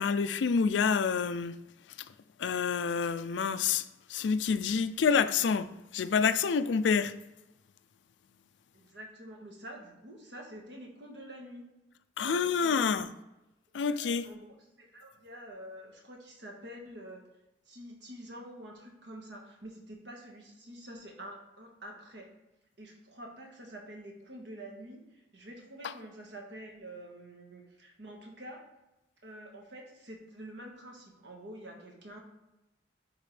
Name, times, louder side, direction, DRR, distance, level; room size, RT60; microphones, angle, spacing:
voice 1, 0.0-1.6 2.4-7.1 12.2-13.1 13.7-14.3 25.8-25.9, left 6 dB, 80° left, 0.4 m, -28 dB
voice 2, 8.7-11.6 12.2-13.1 13.8-17.2 17.6-22.3 22.8-28.6 29.2-32.2, right 1 dB, 75° right, 1.5 m, -47 dB
10.0 x 3.7 x 3.3 m
head